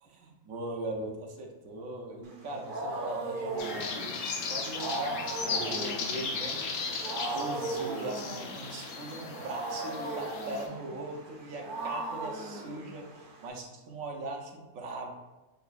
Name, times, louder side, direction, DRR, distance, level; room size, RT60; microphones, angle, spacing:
voice 1, 0.0-6.7 7.3-15.1, right 2 dB, 75° right, 1 dB, 1.0 m, -40 dB
Wild animals, 2.3-13.5, right 2 dB, 50° right, 0.7 m, -38 dB
sound 1, 3.6-10.7, left 4 dB, 85° left, 1.1 m, -36 dB
6.6 x 2.3 x 2.4 m, 1.1 s
omnidirectional pair, 1.4 m